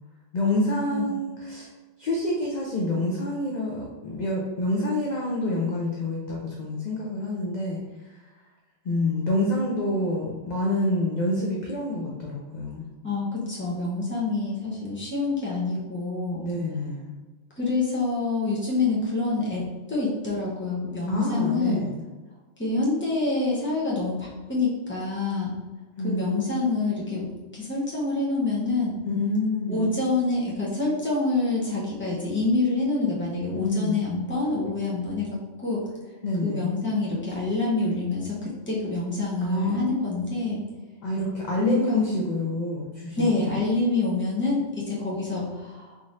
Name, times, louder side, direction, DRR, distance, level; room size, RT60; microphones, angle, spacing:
voice 1, 0.3-1.7 2.0-7.8 8.8-12.8 16.4-17.1 21.1-22.0 26.0-26.5 29.1-30.0 33.5-34.0 36.2-36.7 39.4-39.9 41.0-43.5, left 1 dB, 55° left, -2 dB, 0.5 m, -27 dB
voice 2, 13.0-16.4 17.6-19.6 19.9-21.9 22.6-25.5 26.0-27.3 27.5-29.0 29.7-35.8 36.4-40.6 41.6-42.0 43.2-45.9, left 3 dB, 10° left, -6 dB, 0.8 m, -26 dB
3.7 x 3.2 x 2.6 m, 1.2 s
omnidirectional pair, 1.2 m